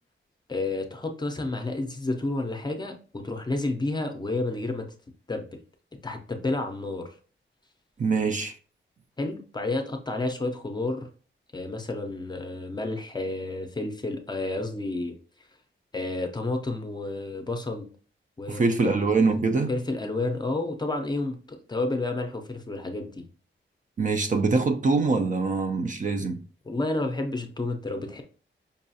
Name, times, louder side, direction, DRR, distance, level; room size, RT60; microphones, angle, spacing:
voice 1, 0.5-4.8 5.3-5.6 6.0-7.1 9.2-11.1 11.5-15.2 15.9-17.9 18.4-18.9 19.7-23.3 26.7-28.2, left 2 dB, 20° left, 0.6 m, -30 dB
voice 2, 8.0-8.5 18.5-19.7 24.0-26.4, right 4 dB, 40° right, 0.4 m, -24 dB
5.3 x 2.3 x 2.7 m
wide cardioid pair, 145°, 20 cm